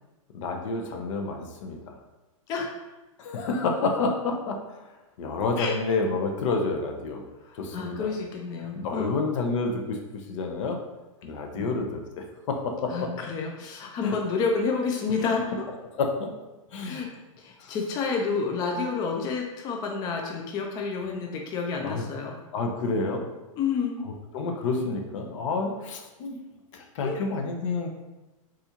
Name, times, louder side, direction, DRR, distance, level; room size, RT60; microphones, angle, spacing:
voice 1, 0.3-2.0 3.2-4.9 5.2-7.2 7.5-8.1 8.7-10.0 10.3-10.8 11.2-13.1 14.0-14.2 15.8-16.3 16.7-17.0 17.6-17.8 21.8-22.0 22.5-23.2 24.3-26.4 26.7-27.9, left 3 dB, 65° left, 3 dB, 0.6 m, -29 dB
voice 2, 7.4-9.2 11.5-11.7 12.9-15.7 16.8-17.1 17.4-22.3 23.6-24.1 27.0-27.3, left 5 dB, 25° left, 1 dB, 0.3 m, -29 dB
4.0 x 2.4 x 2.8 m, 1.1 s
hypercardioid pair, 135°, 17 cm